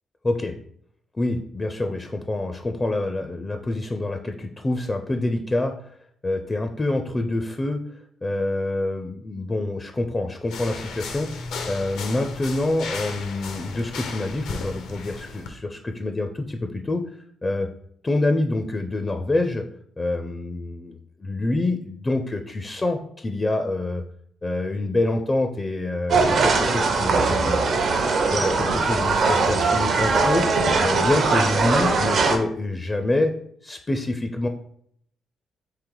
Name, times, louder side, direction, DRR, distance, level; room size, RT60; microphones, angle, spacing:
voice 1, 0.2-0.5 1.1-6.0 6.2-7.8 8.2-11.3 11.7-17.0 17.4-17.7 18.0-19.6 20.0-24.0 24.4-27.6 28.3-30.5 30.8-33.3 33.6-34.5, left 2 dB, 25° left, 5 dB, 0.5 m, -26 dB
sound 1, 10.5-15.5, left 4 dB, 80° left, 0.7 m, -35 dB
sound 2, 26.1-32.4, right 4 dB, 60° right, 0.7 m, -21 dB
3.8 x 2.9 x 4.7 m, 0.66 s
cardioid pair, 90°, 0 cm